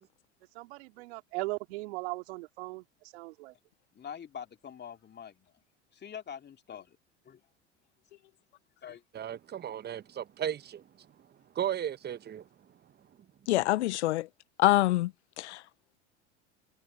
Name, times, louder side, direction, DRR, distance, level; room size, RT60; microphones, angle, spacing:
voice 1, 0.5-3.5, right 23 dB, 65° right, 3.4 m, -38 dB
voice 2, 3.9-5.5 5.9-7.0 7.2-7.4 8.8-9.0, left 8 dB, 30° left, 2.8 m, -44 dB
voice 3, 9.1-11.1 11.5-12.5, right 10 dB, 30° right, 1.2 m, -35 dB
voice 4, 13.5-14.3 14.6-15.1 15.4-15.6, left 17 dB, 70° left, 0.8 m, -25 dB
hypercardioid pair, 80°, 35 cm